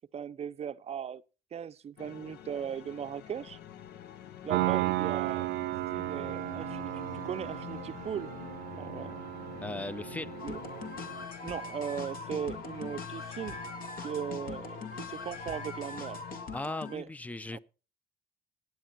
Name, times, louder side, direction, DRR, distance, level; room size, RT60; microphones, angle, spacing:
voice 1, 0.1-1.2 1.5-3.6 4.4-5.5 5.9-8.3 8.8-9.2 10.4-10.9 11.4-13.6 14.0-16.2 16.9-17.1 17.5-17.6, right 8 dB, 40° right, 0.6 m, -38 dB
Orchestral Strings Warm A, 2.0-16.5, left 11 dB, 75° left, 0.8 m, -46 dB
Piano, 4.5-11.2, right 19 dB, 80° right, 0.5 m, -34 dB
voice 2, 9.6-10.4 16.5-17.6, left 2 dB, 10° left, 0.5 m, -37 dB
sound 1, 10.4-17.0, left 3 dB, 55° left, 1.9 m, -41 dB
15.0 x 9.2 x 4.4 m
cardioid pair, 110°, 17 cm